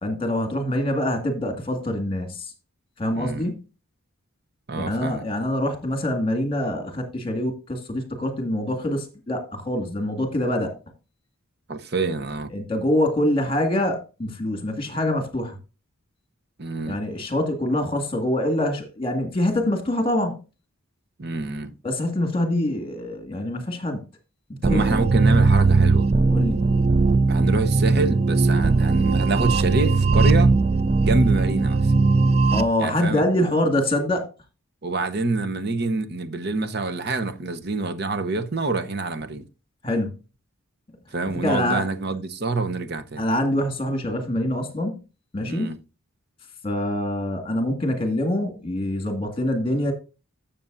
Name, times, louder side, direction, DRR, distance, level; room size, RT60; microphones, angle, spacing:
voice 1, 0.0-2.5 3.0-3.7 4.8-10.7 12.5-15.6 16.8-20.4 21.8-24.0 24.6-24.8 26.3-26.6 32.5-34.3 39.8-40.1 41.4-41.8 43.2-45.0 45.3-45.7 46.6-49.9, left 1 dB, 25° left, 2.0 m, -25 dB
voice 2, 3.1-3.5 4.7-5.3 11.7-12.5 16.6-17.0 21.2-21.7 24.6-26.1 27.3-30.5 31.0-31.9 32.8-33.2 34.8-39.5 41.1-43.3 45.5-45.8, right 3 dB, 50° right, 0.8 m, -26 dB
sound 1, 24.6-32.6, right 3 dB, 30° right, 0.3 m, -19 dB
12.5 x 7.0 x 2.6 m
head